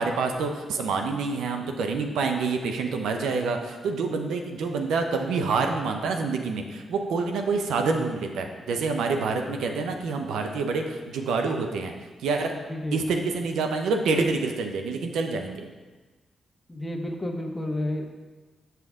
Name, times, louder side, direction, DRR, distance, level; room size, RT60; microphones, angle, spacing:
voice 1, 0.0-11.9 12.2-12.5 12.9-15.7, right 4 dB, 85° right, 4 dB, 0.6 m, -27 dB
voice 2, 12.7-13.0 16.7-18.1, left 1 dB, 15° left, 1 dB, 1.2 m, -31 dB
7.5 x 5.7 x 3.6 m, 1.3 s
supercardioid pair, 55°, 0 cm